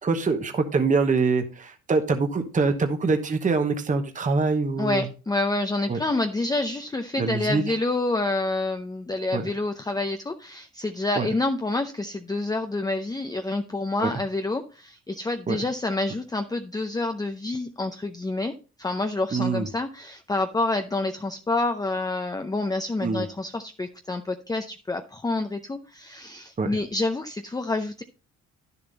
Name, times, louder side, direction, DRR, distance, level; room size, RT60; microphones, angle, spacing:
voice 1, 0.0-5.1 5.9-6.0 7.2-7.6 9.3-9.5 11.2-11.3 14.0-14.1 15.5-15.6 19.3-19.7 23.0-23.2 26.6-26.8, right 4 dB, 25° right, 6 dB, 1.0 m, -24 dB
voice 2, 4.8-18.5 18.8-28.0, left 2 dB, 15° left, 7 dB, 0.6 m, -28 dB
10.5 x 6.9 x 4.0 m, 0.34 s
cardioid pair, 90°, 30 cm